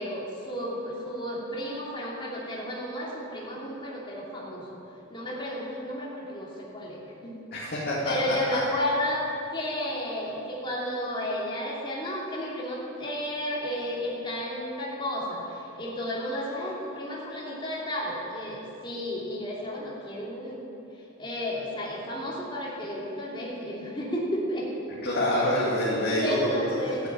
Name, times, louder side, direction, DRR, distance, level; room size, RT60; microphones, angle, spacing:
voice 1, 0.0-4.6 5.1-7.4 8.0-9.2 9.5-20.7 21.2-25.0 26.1-27.0, equal, 25° left, -5 dB, 2.8 m, -32 dB
voice 2, 7.5-8.1 25.0-27.1, left 1 dB, 50° left, -6 dB, 2.4 m, -26 dB
14.0 x 8.9 x 9.0 m, 2.8 s
head